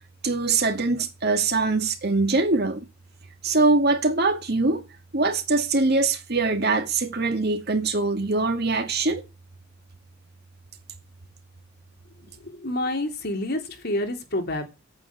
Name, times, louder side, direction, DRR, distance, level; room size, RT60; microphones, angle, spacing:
voice 1, 0.2-2.9 3.4-4.8 5.1-9.2, right 3 dB, 50° right, 2.4 m, -23 dB
voice 2, 12.4-14.7, left 1 dB, 50° left, 3.2 m, -28 dB
9.6 x 9.0 x 8.5 m
head